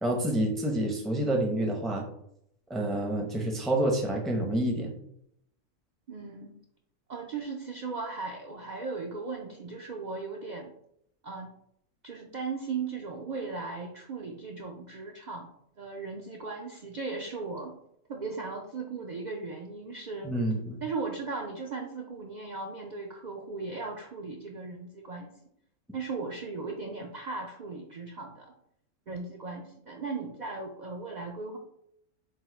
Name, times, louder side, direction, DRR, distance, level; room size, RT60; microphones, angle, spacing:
voice 1, 0.0-2.1 2.7-4.9 20.2-20.8, right 1 dB, ahead, 0 dB, 0.4 m, -28 dB
voice 2, 6.1-6.6 7.1-10.7 11.2-11.5 12.0-15.5 15.8-17.7 18.1-20.4 20.8-25.3 25.9-28.5 29.1-31.6, right 4 dB, 75° right, 0 dB, 0.4 m, -37 dB
4.4 x 2.1 x 4.5 m, 0.72 s
omnidirectional pair, 1.4 m